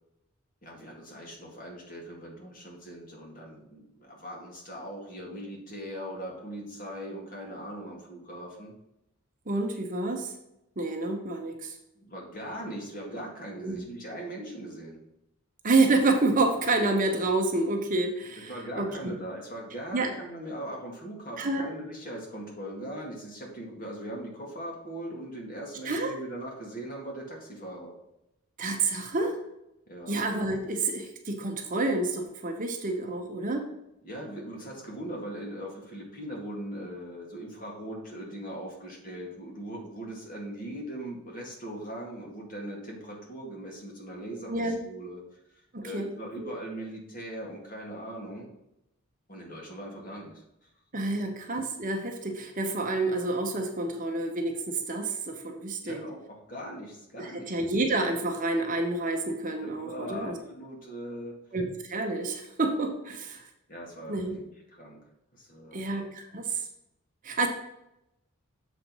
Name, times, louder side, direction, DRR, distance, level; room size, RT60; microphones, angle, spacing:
voice 1, 0.6-8.7 12.0-15.0 18.5-27.9 29.9-30.1 34.0-45.2 45.8-48.5 49.3-50.7 55.8-57.5 59.8-61.4 63.7-64.4 64.7-65.0 65.3-65.9, right 1 dB, 40° left, -1 dB, 2.0 m, -40 dB
voice 2, 9.5-10.3 10.8-11.7 13.6-13.8 15.6-18.5 18.8-19.1 19.9-20.1 21.4-21.7 25.8-26.1 28.6-29.4 30.1-33.7 44.5-44.8 45.7-46.1 46.4-46.5 50.9-56.0 57.2-60.4 61.5-63.5 64.1-64.3 65.7-66.7 67.2-67.5, right 2 dB, 40° right, 3 dB, 1.0 m, -28 dB
7.2 x 4.6 x 5.4 m, 0.85 s
head